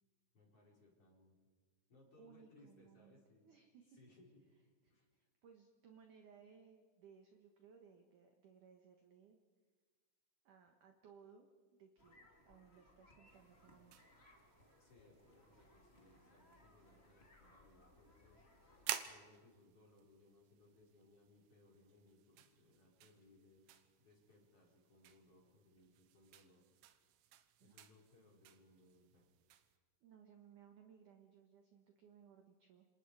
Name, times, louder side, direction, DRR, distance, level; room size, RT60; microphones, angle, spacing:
voice 1, 0.3-1.4 1.9-3.5 3.9-4.4 4.9-5.1 14.8-18.4 19.0-26.6 27.6-29.3, left 2 dB, 30° left, -2 dB, 5.2 m, -67 dB
voice 2, 2.2-4.0 4.8-9.4 10.4-11.5 11.8-14.2 27.6-27.8 30.0-32.9, right 7 dB, 65° right, 4 dB, 2.0 m, -63 dB
sound 1, 12.0-18.9, left 1 dB, 60° left, 0.6 m, -67 dB
sound 2, 13.3-29.8, right 12 dB, 90° right, 3.6 m, -53 dB
29.0 x 27.0 x 4.9 m, 1.5 s
omnidirectional pair, 5.6 m